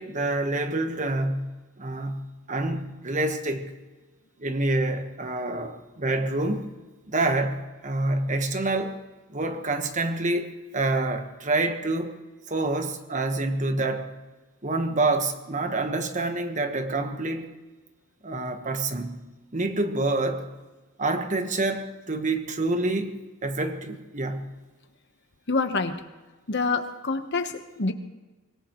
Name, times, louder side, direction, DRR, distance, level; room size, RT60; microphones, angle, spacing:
voice 1, 0.0-1.5 1.8-3.7 4.4-6.7 7.1-9.0 9.3-12.2 12.5-14.1 14.6-17.5 18.2-19.2 19.5-20.5 21.0-24.5, right 2 dB, 35° right, 1.3 m, -27 dB
voice 2, 25.5-26.0 26.5-27.9, left 3 dB, 55° left, 1.1 m, -26 dB
25.0 x 18.5 x 3.1 m
head